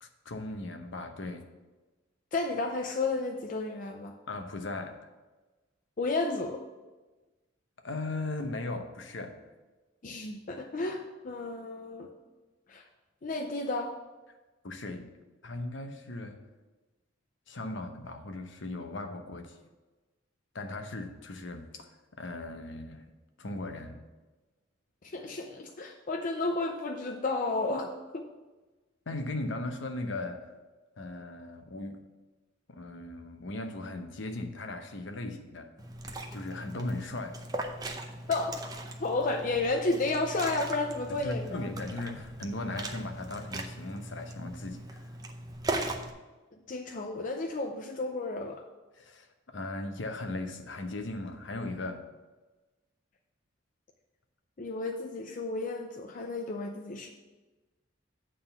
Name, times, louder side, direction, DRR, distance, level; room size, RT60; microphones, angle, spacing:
voice 1, 0.0-1.5 4.3-5.0 7.8-9.4 14.6-15.1 15.4-16.4 17.5-19.6 20.5-21.9 22.2-23.0 23.4-24.0 29.1-30.5 31.0-32.0 32.7-35.7 36.3-37.4 41.2-45.0 48.9-52.0, left 2 dB, 65° left, 6 dB, 0.9 m, -38 dB
voice 2, 2.3-4.1 6.0-6.6 10.0-12.1 12.7-12.8 13.2-13.9 25.0-28.3 38.3-38.6 39.0-41.7 46.7-48.6 54.6-57.1, left 3 dB, 40° left, 3 dB, 0.5 m, -32 dB
Liquid, 35.8-46.1, right 2 dB, 20° right, 0.6 m, -39 dB
9.0 x 3.8 x 7.0 m, 1.2 s
head